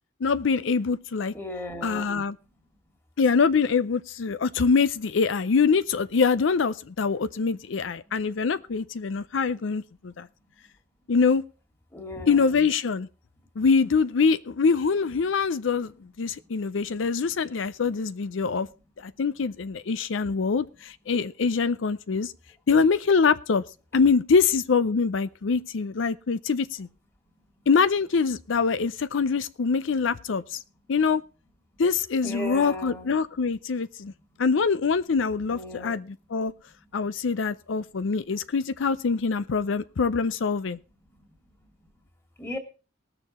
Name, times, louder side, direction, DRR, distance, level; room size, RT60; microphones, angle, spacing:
voice 1, 0.2-1.3 1.8-2.3 3.2-10.3 11.1-11.4 12.3-13.1 13.6-18.7 19.0-22.3 22.7-23.6 23.9-26.9 27.7-30.6 30.9-31.2 31.8-34.1 34.4-36.5 36.9-40.8, left 5 dB, 85° left, 14 dB, 0.5 m, -24 dB
voice 2, 1.3-2.2 11.9-12.7 32.2-33.2 35.5-36.0 42.4-42.6, left 1 dB, 15° left, 4 dB, 2.2 m, -36 dB
19.5 x 6.9 x 4.2 m, 0.33 s
head